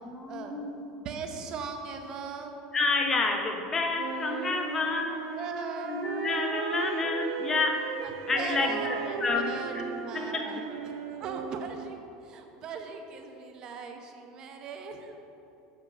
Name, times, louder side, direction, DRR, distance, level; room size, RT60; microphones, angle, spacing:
voice 1, 0.1-0.7 2.7-5.2 5.8-7.9 8.3-8.9 9.2-10.5, left 3 dB, 20° left, 3 dB, 0.7 m, -29 dB
voice 2, 1.0-2.6 5.3-6.0 8.0-15.1, right 5 dB, 35° right, 4 dB, 0.7 m, -39 dB
Wind instrument woodwind instrument, 3.9-11.9, right 7 dB, 75° right, 0.5 m, -36 dB
7.5 x 4.5 x 6.0 m, 2.9 s
supercardioid pair, 160°, 2 cm